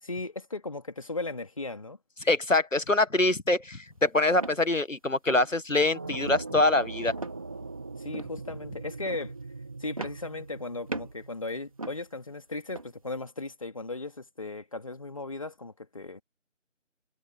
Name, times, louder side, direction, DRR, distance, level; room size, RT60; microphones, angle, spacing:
voice 1, 0.0-2.0 8.0-9.3 9.8-16.2, left 2 dB, 25° left, 2.4 m, -37 dB
voice 2, 2.2-7.1, left 2 dB, 80° left, 1.8 m, -24 dB
sound 1, 3.9-4.0 4.4-4.7 5.3-5.6 6.3-6.6 7.1-7.7 8.1-8.4 9.1-9.3 10.0-10.6 10.9-11.3 11.8-12.1 12.7-12.9, right 2 dB, 25° right, 2.7 m, -39 dB
sound 2, 5.9-11.8, right 3 dB, 10° right, 2.1 m, -41 dB
figure-of-eight pair, 165°, 38 cm